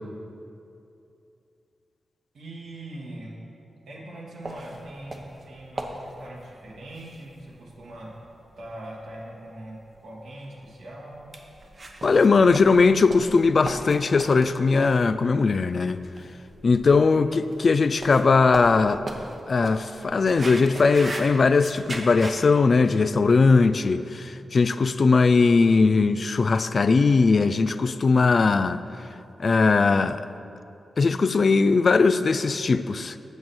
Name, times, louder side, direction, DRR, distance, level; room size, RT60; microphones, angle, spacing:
voice 1, 2.3-3.4 3.9-8.1 8.6-11.3 17.1-17.2, right 1 dB, 85° right, -4 dB, 1.8 m, -41 dB
sound 1, 4.4-22.4, right 2 dB, 50° right, 1.0 m, -39 dB
voice 2, 12.0-16.0 16.6-19.0 19.5-28.8 29.4-30.2 31.0-33.2, left 4 dB, 55° left, 13 dB, 0.3 m, -20 dB
7.1 x 6.3 x 6.3 m, 2.7 s
cardioid pair, 50°, 0 cm